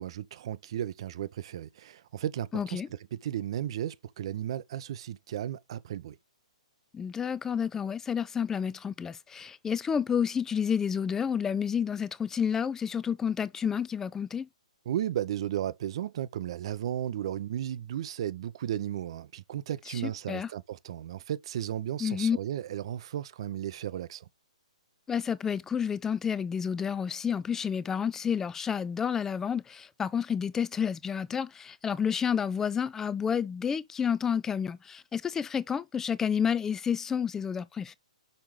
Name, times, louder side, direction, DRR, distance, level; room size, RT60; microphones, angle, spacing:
voice 1, 0.0-2.8 3.1-6.1 14.9-24.2, right 11 dB, 50° right, 0.7 m, -34 dB
voice 2, 2.5-2.9 6.9-14.5 19.9-20.5 22.0-22.4 25.1-37.9, left 7 dB, 10° left, 0.5 m, -30 dB
6.4 x 5.8 x 3.2 m
figure-of-eight pair, 120°, 4 cm